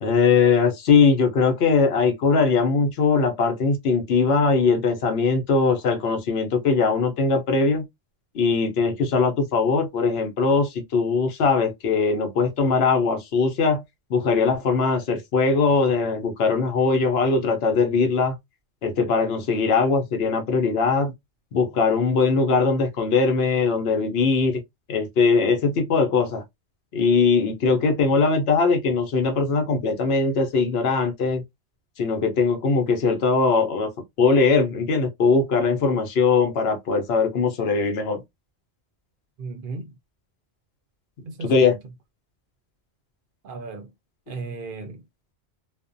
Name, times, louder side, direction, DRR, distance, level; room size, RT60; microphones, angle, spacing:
voice 1, 0.0-7.8 8.3-13.8 14.1-18.3 18.8-21.1 21.5-24.6 24.9-26.4 26.9-31.4 32.0-33.9 34.2-38.2 41.4-41.7, left 4 dB, 70° left, 0.9 m, -21 dB
voice 2, 39.4-39.9 41.3-41.8 43.4-43.9 44.3-45.0, right 3 dB, 60° right, 0.6 m, -35 dB
2.4 x 2.1 x 2.4 m
omnidirectional pair, 1.1 m